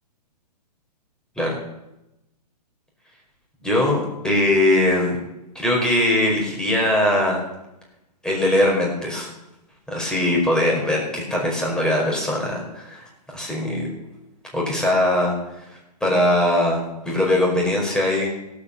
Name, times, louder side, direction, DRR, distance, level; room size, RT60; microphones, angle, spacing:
voice 1, 3.6-5.2 5.6-7.4 8.2-9.3 9.9-13.0 13.3-13.9 14.5-15.3 16.0-16.8 17.0-18.3, left 1 dB, 5° left, -2 dB, 5.1 m, -21 dB
16.5 x 8.7 x 7.1 m, 0.92 s
hypercardioid pair, 140°, 21 cm